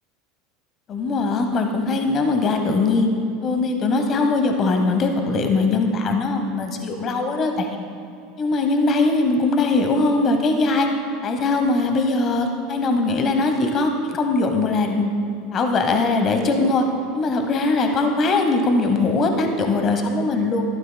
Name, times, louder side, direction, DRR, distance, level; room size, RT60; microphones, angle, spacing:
voice 1, 0.9-3.1 3.4-7.7 8.4-10.9 11.2-15.1 15.5-16.8 17.1-20.6, left 3 dB, 40° left, 5 dB, 1.0 m, -21 dB
13.0 x 11.5 x 2.2 m, 2.7 s
supercardioid pair, 105°, 0 cm